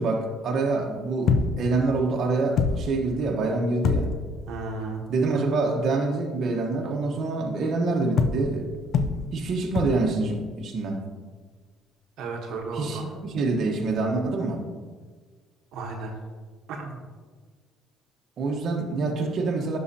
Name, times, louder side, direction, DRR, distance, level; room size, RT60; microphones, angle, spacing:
voice 1, 0.0-4.1 5.1-8.7 9.3-11.0 12.7-14.7 18.4-19.8, right 3 dB, 50° right, 0 dB, 1.1 m, -26 dB
sound 1, 1.3-1.7 2.2-2.3 2.6-3.1 3.8-4.4 8.2-8.6 8.9-9.4 9.7-10.2 12.5-12.6, left 5 dB, 55° left, 0.5 m, -25 dB
voice 2, 4.5-5.0 12.2-13.1 15.7-16.1 16.7-17.0, right 3 dB, 70° right, 1 dB, 1.1 m, -33 dB
11.0 x 5.7 x 2.8 m, 1.5 s
cardioid pair, 125°, 0 cm